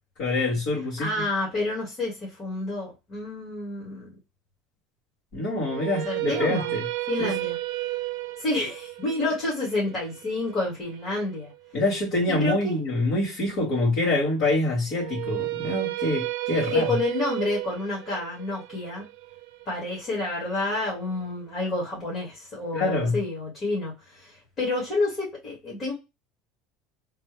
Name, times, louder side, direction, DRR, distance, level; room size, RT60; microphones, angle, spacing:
voice 1, 0.2-1.2 5.3-6.9 7.2-7.3 11.7-17.0 22.7-23.2, left 2 dB, 55° left, 1.9 m, -26 dB
voice 2, 1.0-4.1 6.0-6.7 7.1-7.6 8.4-11.5 12.4-12.8 16.5-19.0 19.6-25.9, left 2 dB, 25° left, 1.7 m, -29 dB
sound 1, 5.6-11.7 14.9-21.0, right 19 dB, 85° right, 0.3 m, -33 dB
3.3 x 2.3 x 3.2 m
cardioid pair, 170°, 0 cm